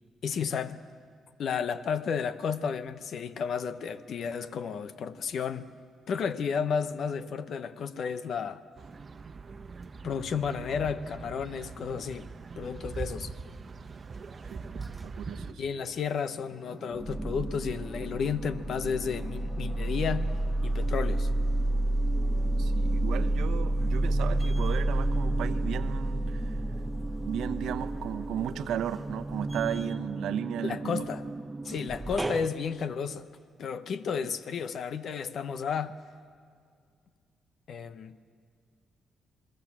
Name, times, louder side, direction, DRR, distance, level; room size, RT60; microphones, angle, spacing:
voice 1, 0.2-0.8 1.4-5.7 6.1-8.6 10.0-12.3 12.6-13.3 15.6-20.3 20.6-21.3 30.6-31.2 31.6-33.3 33.6-35.9 37.7-38.2, left 6 dB, 65° left, 1.0 m, -32 dB
sound 1, 8.8-15.5, right 4 dB, 40° right, 1.1 m, -42 dB
voice 2, 14.5-15.6 22.6-26.6 27.2-31.0, right 9 dB, 80° right, 0.9 m, -35 dB
sound 2, 15.4-16.2 16.6-32.5, right 1 dB, 15° right, 0.9 m, -30 dB
27.5 x 20.0 x 7.4 m
cardioid pair, 90°, 0 cm